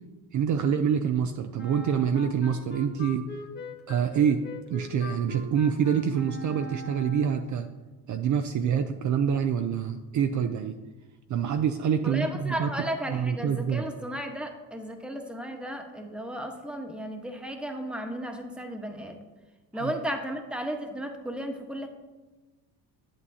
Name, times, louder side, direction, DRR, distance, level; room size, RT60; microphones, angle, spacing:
voice 1, 0.3-3.3 3.9-7.7 8.1-10.8 11.3-12.7 13.1-13.9 19.8-19.9, right 7 dB, 45° right, 7 dB, 0.5 m, -26 dB
Wind instrument woodwind instrument, 1.6-7.6, equal, 25° left, 1.2 m, -41 dB
voice 2, 12.0-19.2 19.7-21.9, right 1 dB, ahead, 3 dB, 1.1 m, -34 dB
8.1 x 7.9 x 2.8 m, 1.2 s
supercardioid pair, 80°, 41 cm